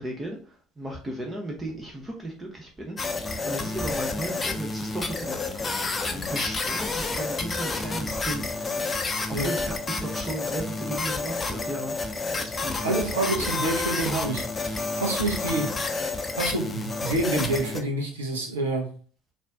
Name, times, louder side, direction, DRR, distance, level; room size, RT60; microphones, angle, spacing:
voice 1, 0.0-8.8 9.3-11.9 12.4-13.6, right 1 dB, 20° right, 0 dB, 0.9 m, -35 dB
sound 1, 3.0-17.8, left 3 dB, 25° left, 0.6 m, -30 dB
voice 2, 12.8-15.7 16.4-18.9, right 2 dB, 80° right, 1 dB, 0.8 m, -28 dB
4.1 x 2.6 x 3.5 m, 0.42 s
figure-of-eight pair, 60°, 0 cm